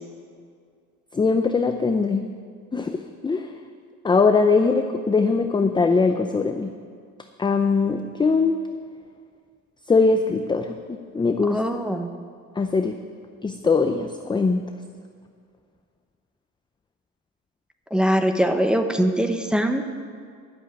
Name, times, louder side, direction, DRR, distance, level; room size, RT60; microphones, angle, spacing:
voice 1, 1.1-2.3 2.7-3.0 3.2-3.5 4.0-6.7 7.4-8.6 9.9-11.6 12.6-13.0 13.4-14.6, left 4 dB, 15° left, 6 dB, 0.5 m, -21 dB
voice 2, 11.5-12.1 17.9-19.9, equal, 5° right, 6 dB, 0.9 m, -22 dB
11.5 x 7.3 x 9.2 m, 2.1 s
cardioid pair, 120°, 31 cm